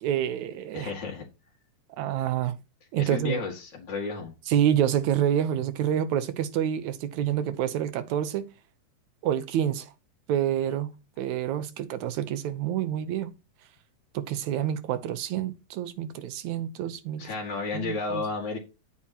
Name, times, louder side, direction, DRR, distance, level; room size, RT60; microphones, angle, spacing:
voice 1, 0.0-0.9 2.0-2.6 2.9-3.4 4.5-8.5 9.2-9.9 10.3-13.3 14.1-17.3 17.7-18.2, right 10 dB, 85° right, 2.3 m, -28 dB
voice 2, 0.7-1.2 3.0-4.3 17.2-18.6, left 4 dB, 40° left, 2.4 m, -32 dB
11.0 x 8.6 x 3.0 m
omnidirectional pair, 3.3 m